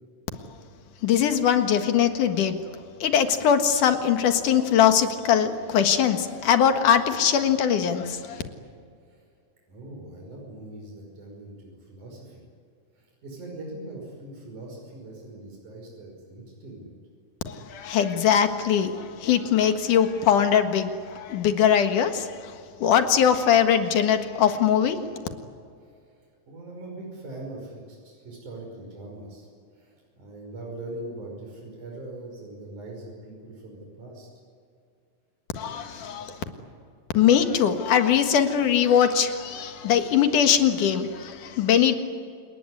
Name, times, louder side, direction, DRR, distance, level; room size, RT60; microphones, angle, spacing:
voice 1, 1.0-2.6 3.0-8.4 17.5-22.5 22.8-25.0 35.5-36.4 37.1-41.9, left 8 dB, 80° left, 7 dB, 3.2 m, -21 dB
voice 2, 9.7-12.4 13.0-16.9 25.8-29.5 29.7-34.3, right 2 dB, 75° right, -1 dB, 6.9 m, -41 dB
28.5 x 19.5 x 9.8 m, 2.3 s
omnidirectional pair, 3.5 m